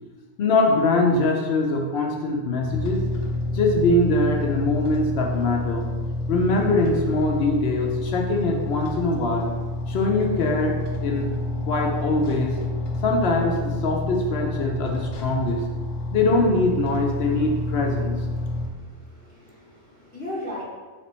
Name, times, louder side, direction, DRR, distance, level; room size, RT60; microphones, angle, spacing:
voice 1, 0.4-3.0 3.5-5.9 6.3-9.5 9.9-11.3 11.7-12.5 13.0-15.6 16.1-18.1, left 2 dB, 65° left, 0 dB, 0.7 m, -22 dB
sound 1, 2.6-18.7, left 2 dB, 80° left, 1.0 m, -29 dB
voice 2, 18.3-20.6, left 1 dB, 10° left, -6 dB, 0.6 m, -38 dB
3.3 x 2.9 x 4.2 m, 1.4 s
omnidirectional pair, 1.4 m